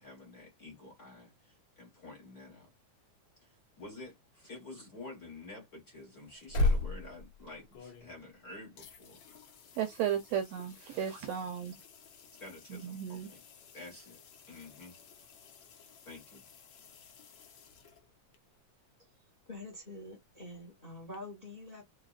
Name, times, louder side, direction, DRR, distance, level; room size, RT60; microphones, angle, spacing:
voice 1, 0.0-2.7 3.4-9.2 12.4-13.4 13.7-14.2 14.5-15.0 16.0-16.4, left 2 dB, 45° left, 1.4 m, -49 dB
sound 1, 6.2-8.4 8.8-18.4 21.1-21.2, left 2 dB, 80° left, 1.0 m, -39 dB
voice 2, 9.8-11.7 12.7-13.3, right 9 dB, 75° right, 1.5 m, -34 dB
voice 3, 19.5-21.8, left 1 dB, 25° left, 1.1 m, -46 dB
4.0 x 3.7 x 2.4 m
omnidirectional pair, 3.4 m